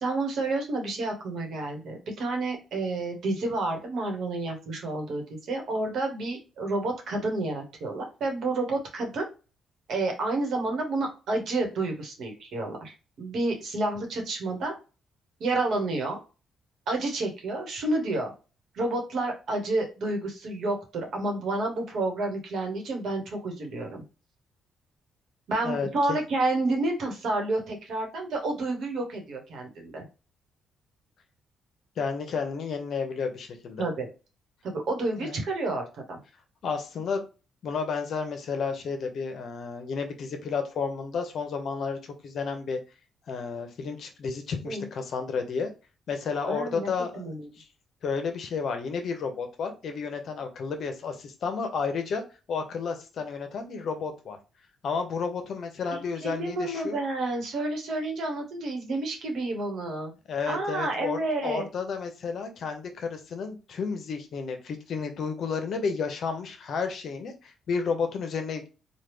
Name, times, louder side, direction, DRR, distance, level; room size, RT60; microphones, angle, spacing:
voice 1, 0.0-5.2 5.5-9.2 9.9-14.7 15.4-16.2 16.9-18.3 18.7-24.0 25.5-30.0 33.8-34.1 34.6-36.2 44.6-44.9 46.5-46.9 47.1-47.5 55.9-60.1 60.5-61.7, right 2 dB, 65° right, 2 dB, 1.1 m, -30 dB
voice 2, 25.6-26.2 32.0-33.9 35.2-35.4 36.6-37.2 37.6-42.8 43.3-45.7 46.1-47.3 47.6-47.7 48.0-52.2 52.5-54.4 54.8-57.0 60.3-68.7, left 5 dB, 60° left, 5 dB, 0.7 m, -31 dB
3.1 x 2.3 x 3.3 m, 0.32 s
cardioid pair, 90°, 0 cm